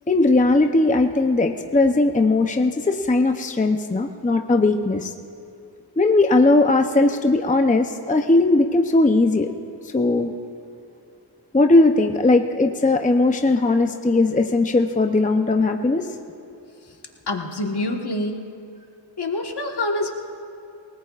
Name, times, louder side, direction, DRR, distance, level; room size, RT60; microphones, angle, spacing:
voice 1, 0.1-5.1 6.0-9.5 9.8-10.3 11.5-16.1, left 2 dB, 15° left, 5 dB, 0.7 m, -18 dB
voice 2, 17.3-18.4 19.2-20.1, left 2 dB, 55° left, 2 dB, 1.5 m, -26 dB
28.5 x 18.5 x 2.5 m, 2.5 s
wide cardioid pair, 70°, 46 cm